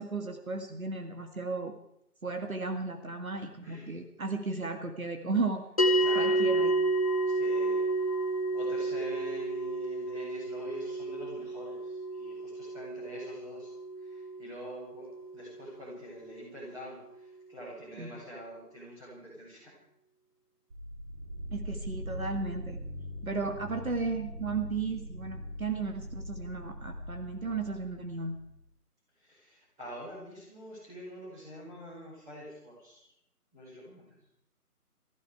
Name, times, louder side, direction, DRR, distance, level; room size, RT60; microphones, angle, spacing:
voice 1, 0.0-1.7 2.2-5.6 6.2-6.8 18.0-18.1 21.5-22.8 23.2-28.4, right 4 dB, 60° right, 5 dB, 1.9 m, -34 dB
voice 2, 3.6-4.0 6.0-6.5 7.3-7.9 8.5-19.7 29.2-33.1 33.5-34.0, equal, 5° right, -8 dB, 5.4 m, -46 dB
sound 1, 5.8-16.3, right 2 dB, 25° left, 1.1 m, -31 dB
sound 2, 20.7-28.5, equal, 25° right, 6.2 m, -41 dB
19.5 x 15.0 x 4.8 m, 0.77 s
figure-of-eight pair, 160°, 47 cm